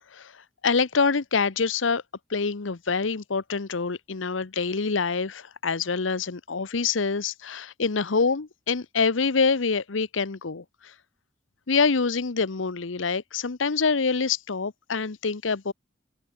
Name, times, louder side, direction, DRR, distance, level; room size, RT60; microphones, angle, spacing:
voice 1, 0.1-2.0 2.3-10.9 11.7-15.7, left 4 dB, 85° left, 0.9 m, -26 dB
head